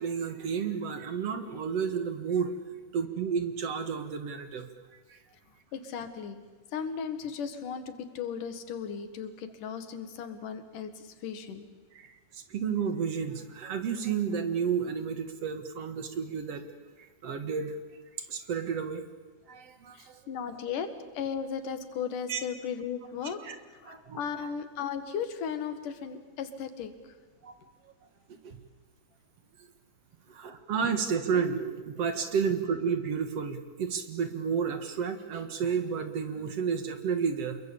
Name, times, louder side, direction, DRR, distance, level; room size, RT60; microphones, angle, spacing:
voice 1, 0.0-2.5 2.9-4.7 5.1-5.2 11.9-16.6 17.2-17.8 18.3-19.0 19.5-20.2 22.3-22.4 23.4-23.6 23.9-24.2 27.4-27.6 28.3-28.6 30.3-37.6, right 6 dB, 55° right, 8 dB, 2.4 m, -31 dB
voice 2, 5.7-6.4 6.7-11.7 19.9-23.4 23.8-26.9, left 7 dB, 90° left, 9 dB, 3.3 m, -36 dB
28.0 x 22.0 x 8.6 m, 1.4 s
omnidirectional pair, 3.6 m